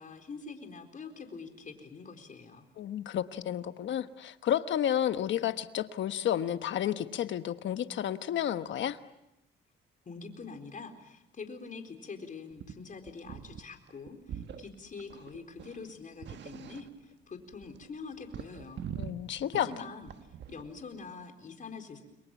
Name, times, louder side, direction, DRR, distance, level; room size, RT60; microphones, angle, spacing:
voice 1, 0.0-2.7 10.1-18.9 19.5-20.1 20.5-22.0, left 4 dB, 40° left, 4 dB, 4.2 m, -45 dB
voice 2, 2.8-9.0 19.0-19.7, left 10 dB, 70° left, 11 dB, 1.3 m, -31 dB
sound 1, 12.5-12.8 13.1-13.6 13.9-14.7 15.0-17.1 17.4-20.8, right 8 dB, 65° right, 1.5 m, -43 dB
29.5 x 23.5 x 7.2 m, 0.88 s
cardioid pair, 90°, 20 cm